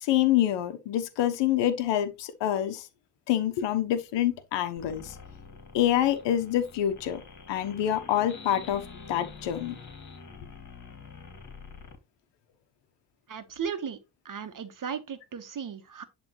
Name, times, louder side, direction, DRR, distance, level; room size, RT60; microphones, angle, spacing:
voice 1, 0.0-2.9 3.3-5.1 5.7-7.2 7.5-8.8 9.1-9.8, left 11 dB, 80° left, 1.2 m, -26 dB
sound 1, 4.8-12.0, left 5 dB, 40° left, 2.8 m, -46 dB
voice 2, 13.3-14.0 14.2-16.0, right 7 dB, 50° right, 1.5 m, -36 dB
10.5 x 3.6 x 3.2 m
supercardioid pair, 65°, 42 cm